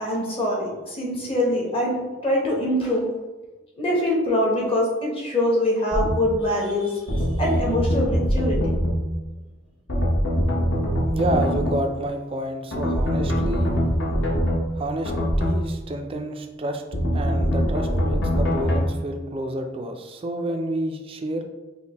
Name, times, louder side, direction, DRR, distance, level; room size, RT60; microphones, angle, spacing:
voice 1, 0.0-2.0 2.2-3.1 3.8-8.6, left 1 dB, 30° left, -3 dB, 0.8 m, -24 dB
sound 1, 5.9-6.1 7.1-9.0 9.9-11.8 12.7-14.6 15.1-15.6 16.9-18.8, equal, 65° left, 0.9 m, -23 dB
voice 2, 11.1-13.7 14.8-15.1 15.4-16.8 17.1-21.4, right 1 dB, 30° right, 4 dB, 0.3 m, -29 dB
5.1 x 2.1 x 2.8 m, 1.1 s
head